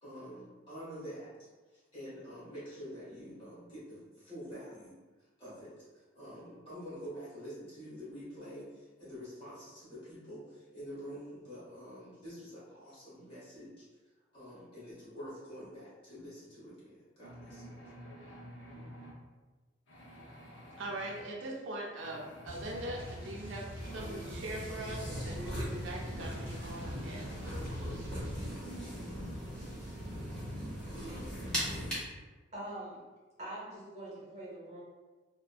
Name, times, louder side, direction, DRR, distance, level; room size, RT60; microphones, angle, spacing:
voice 1, 0.0-13.9 14.3-17.6, equal, 30° left, -10 dB, 1.4 m, -47 dB
sound 1, 17.2-19.2 19.9-21.2 22.0-24.1 24.9-25.5 26.2-27.7 28.5-29.7, equal, 75° left, 0.6 m, -51 dB
voice 2, 20.8-28.3, right 1 dB, 85° right, -2 dB, 0.6 m, -42 dB
sound 2, 22.5-28.6, equal, 10° right, 1.2 m, -45 dB
sound 3, 23.8-31.9, equal, 5° left, 0.9 m, -40 dB
voice 3, 32.5-33.0 33.4-34.8, right 1 dB, 35° right, -6 dB, 0.8 m, -43 dB
3.4 x 2.1 x 2.3 m, 1.3 s
head